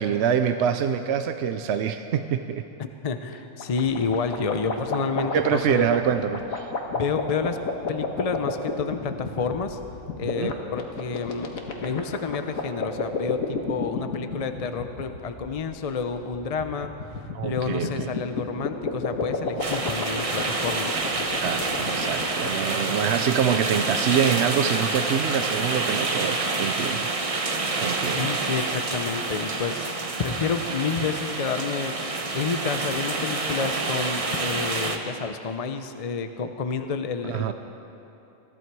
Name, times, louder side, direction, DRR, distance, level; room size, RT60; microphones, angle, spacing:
voice 1, 0.0-2.6 5.3-6.7 10.4-10.5 17.3-18.1 21.4-27.1 27.8-28.4 37.2-37.5, right 8 dB, 65° right, 9 dB, 0.7 m, -25 dB
voice 2, 2.8-5.9 6.9-7.6 7.9-9.8 10.2-11.5 11.8-16.9 17.4-21.0 28.1-29.9 30.2-32.0 32.3-37.5, left 5 dB, 45° left, 8 dB, 0.5 m, -29 dB
sound 1, 3.6-22.5, left 5 dB, 80° left, 1.7 m, -31 dB
sound 2, 19.6-35.0, right 3 dB, 30° right, 0.9 m, -28 dB
21.0 x 14.0 x 4.7 m, 3.0 s
omnidirectional pair, 1.4 m